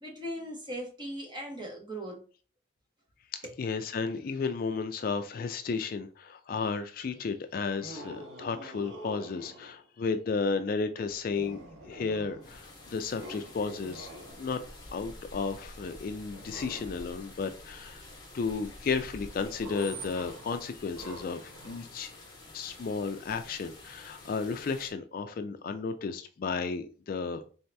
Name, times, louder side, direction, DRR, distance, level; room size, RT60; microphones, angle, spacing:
voice 1, 0.0-2.2 3.4-3.5, equal, 25° right, 1.2 m, -39 dB
voice 2, 3.6-14.1 14.4-14.6 14.9-18.0 18.3-22.1 22.5-27.4, left 4 dB, 50° left, 0.3 m, -33 dB
sound 1, 7.8-9.8 11.3-12.7 13.2-14.8 16.3-17.4 19.6-21.8, equal, 80° right, 0.9 m, -46 dB
Screech, 11.0-20.3, right 4 dB, 50° right, 1.9 m, -54 dB
sound 2, 12.4-24.9, left 2 dB, 20° left, 1.3 m, -49 dB
3.9 x 2.8 x 3.3 m
head